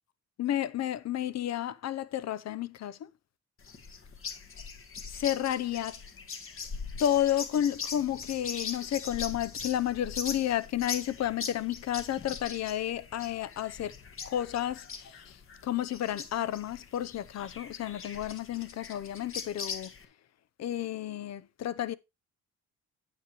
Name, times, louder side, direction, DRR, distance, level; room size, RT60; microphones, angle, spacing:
voice 1, 0.4-3.1 5.1-6.0 7.0-13.9 14.3-15.4 15.6-19.9 20.6-21.9, left 11 dB, 60° left, 0.7 m, -31 dB
sound 1, 3.6-20.1, left 5 dB, 45° left, 1.6 m, -41 dB
9.3 x 7.7 x 3.0 m
cardioid pair, 90°, 30 cm